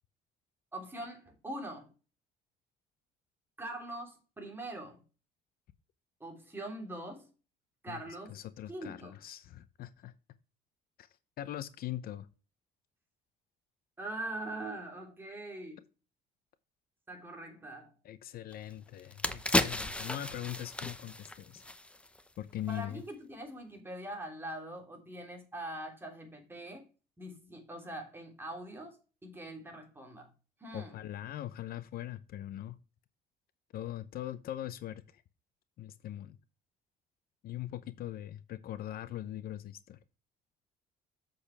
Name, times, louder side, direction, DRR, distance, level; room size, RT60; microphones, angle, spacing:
voice 1, 0.7-1.9 3.6-5.0 6.2-7.3 7.8-8.3 8.7-9.2 14.0-15.8 17.1-17.9 22.7-26.9 27.2-30.3 30.6-30.9, right 1 dB, 15° right, 3.3 m, -43 dB
voice 2, 8.3-10.1 11.0-11.1 11.4-12.3 18.0-21.6 22.4-23.0 30.7-32.8 33.7-35.2 35.8-36.4 37.4-40.0, left 12 dB, 60° left, 0.7 m, -41 dB
sound 1, 18.5-18.6 19.0-22.3 22.6-22.8, left 1 dB, 5° left, 0.8 m, -33 dB
7.9 x 6.5 x 3.4 m
cardioid pair, 110°, 17 cm